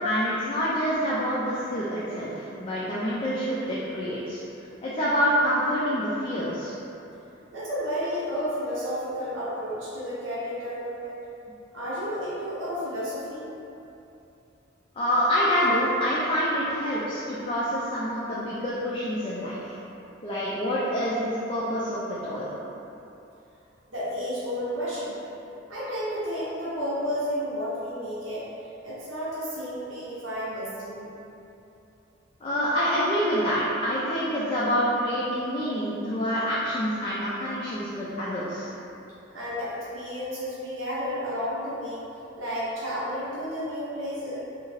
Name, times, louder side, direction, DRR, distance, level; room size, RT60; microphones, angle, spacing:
voice 1, 0.0-4.4 4.8-6.7 15.0-19.7 20.2-22.5 32.4-38.7, equal, 25° left, -8 dB, 0.3 m, -27 dB
voice 2, 7.5-11.2 11.7-13.5 23.9-25.2 25.7-28.5 28.8-31.1 39.3-42.1 42.4-44.4, equal, 85° right, -10 dB, 0.8 m, -32 dB
2.8 x 2.6 x 2.9 m, 2.9 s
head